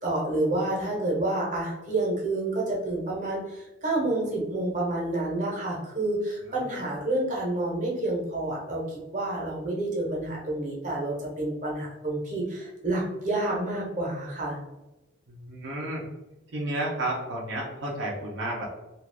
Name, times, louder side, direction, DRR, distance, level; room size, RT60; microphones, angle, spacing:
voice 1, 0.0-14.6, right 2 dB, 40° right, -3 dB, 0.9 m, -29 dB
voice 2, 15.3-16.0 16.5-18.6, right 1 dB, 75° right, -3 dB, 0.6 m, -32 dB
2.4 x 2.4 x 3.3 m, 0.99 s
head